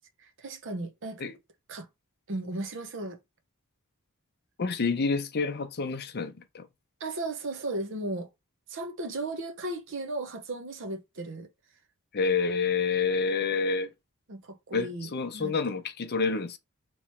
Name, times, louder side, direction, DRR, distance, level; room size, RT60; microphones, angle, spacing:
voice 1, 0.4-1.2 1.7-1.9 2.3-3.2 7.0-8.3 8.7-11.5 14.3-15.5, right 2 dB, 60° right, 0.8 m, -35 dB
voice 2, 4.6-6.7 12.1-13.9 14.7-16.6, left 4 dB, 50° left, 0.6 m, -28 dB
3.1 x 3.0 x 4.2 m
head